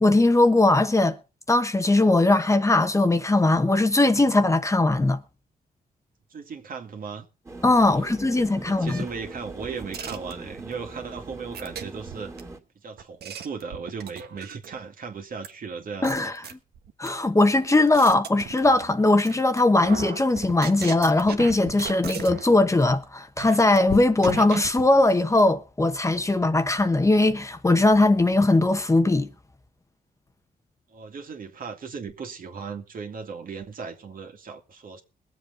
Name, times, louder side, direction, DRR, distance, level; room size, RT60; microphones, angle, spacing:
voice 1, 0.0-1.2 1.5-5.2 7.6-9.0 16.0-16.3 17.0-29.3, left 2 dB, 20° left, 1.0 m, -20 dB
voice 2, 6.3-7.3 7.8-12.3 12.8-16.3 30.9-35.0, right 5 dB, 60° right, 2.3 m, -37 dB
sound 1, 7.5-12.6, right 2 dB, 15° right, 2.4 m, -41 dB
sound 2, 9.9-10.7 11.5-12.4 13.0-14.8 15.4-15.5 16.0-17.1 17.6-19.0 19.2-19.6 19.8-22.5 22.8-23.0 23.4-23.8 24.2-24.9, right 8 dB, 80° right, 1.4 m, -37 dB
sound 3, 23.9-24.4, left 11 dB, 80° left, 0.9 m, -31 dB
22.0 x 7.8 x 3.9 m
cardioid pair, 90°, 16 cm